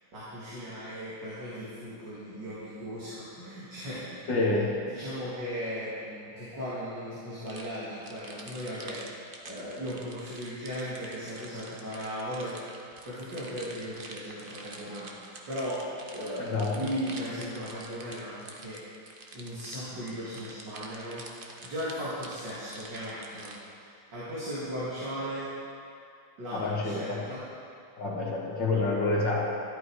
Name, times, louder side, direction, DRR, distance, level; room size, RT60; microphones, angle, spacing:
voice 1, 0.1-4.6 4.9-12.6 13.0-15.9 16.1-18.8 19.3-21.3 21.6-25.5 26.4-27.5, equal, 60° right, -10 dB, 3.1 m, -37 dB
voice 2, 4.3-4.7 16.4-16.7 26.5-27.2 28.0-29.4, left 3 dB, 65° left, -3 dB, 2.2 m, -28 dB
sound 1, 7.5-23.6, right 3 dB, 40° right, 0.8 m, -47 dB
13.0 x 11.0 x 4.8 m, 2.6 s
omnidirectional pair, 2.1 m